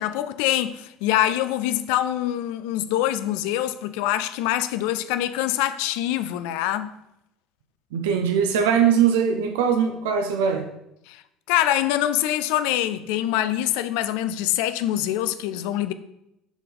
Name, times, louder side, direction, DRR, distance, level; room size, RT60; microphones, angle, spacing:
voice 1, 0.0-6.9 11.1-11.2 11.5-15.9, left 13 dB, 60° left, 0.4 m, -24 dB
voice 2, 7.9-10.7, right 7 dB, 65° right, 0.6 m, -21 dB
7.0 x 4.1 x 3.8 m
figure-of-eight pair, 60°, 0 cm